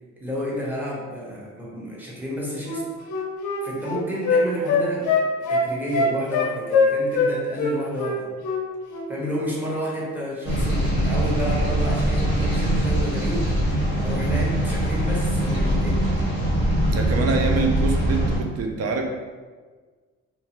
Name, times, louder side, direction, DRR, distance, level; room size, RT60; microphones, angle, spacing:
voice 1, 0.2-2.9 3.6-5.2 5.5-8.3 9.1-13.5 14.0-16.0, equal, 5° right, -6 dB, 0.9 m, -30 dB
Wind instrument woodwind instrument, 2.6-7.3 7.6-8.6 8.9-9.1, left 4 dB, 85° left, 0.6 m, -22 dB
sound 1, 10.4-18.4, right 1 dB, 40° right, 1.3 m, -22 dB
voice 2, 16.9-19.0, right 4 dB, 55° right, 3 dB, 0.5 m, -25 dB
2.7 x 2.4 x 2.9 m, 1.4 s
cardioid pair, 90°, 30 cm